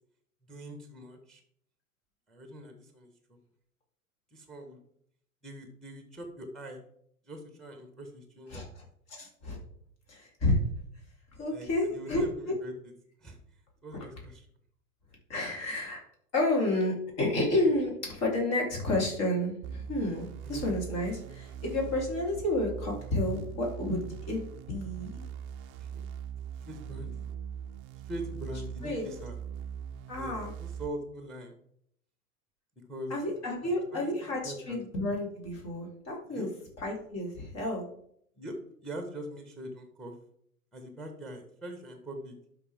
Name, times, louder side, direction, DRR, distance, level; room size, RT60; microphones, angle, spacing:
voice 1, 0.5-1.4 2.3-3.1 4.3-4.8 5.4-6.8 7.3-8.7 11.5-12.9 13.2-13.4 13.8-14.5 20.4-20.8 25.8-25.9 26.7-27.3 28.1-29.4 30.1-31.5 32.9-33.2 33.6-34.1 34.4-34.8 36.3-36.5 38.4-38.6 38.8-40.1 40.7-42.3, equal, ahead, 5 dB, 1.7 m, -42 dB
voice 2, 8.5-8.8 9.1-9.6 10.1-10.6 11.4-12.5 13.9-14.0 15.3-16.0 16.3-24.0 24.3-24.4 24.7-25.2 28.8-29.1 30.1-30.5 33.1-36.5 36.8-37.8, left 1 dB, 35° left, -1 dB, 3.9 m, -30 dB
sound 1, 19.6-30.9, right 8 dB, 25° right, 0.7 m, -41 dB
12.0 x 5.9 x 3.7 m, 0.67 s
figure-of-eight pair, 100°, 44 cm